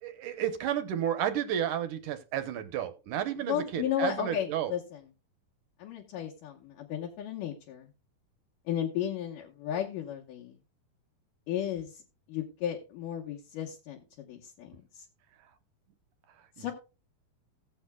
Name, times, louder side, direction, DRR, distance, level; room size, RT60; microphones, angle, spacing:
voice 1, 0.0-4.7 16.6-16.7, right 10 dB, 70° right, 9 dB, 2.2 m, -32 dB
voice 2, 3.4-5.0 5.8-7.9 8.7-10.6 11.5-12.0 12.3-15.0 16.6-16.7, left 10 dB, 70° left, 0 dB, 2.6 m, -34 dB
17.5 x 7.9 x 2.3 m, 0.31 s
omnidirectional pair, 4.2 m